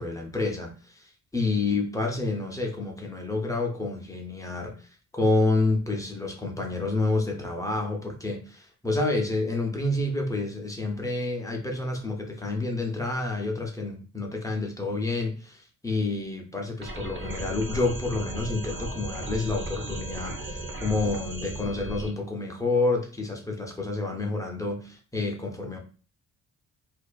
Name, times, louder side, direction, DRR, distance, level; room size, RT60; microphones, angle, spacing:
voice 1, 0.0-25.8, left 2 dB, 10° left, 0.5 m, -29 dB
sound 1, 16.8-22.1, right 1 dB, 40° right, 0.6 m, -35 dB
2.3 x 2.3 x 2.2 m
cardioid pair, 90°, 30 cm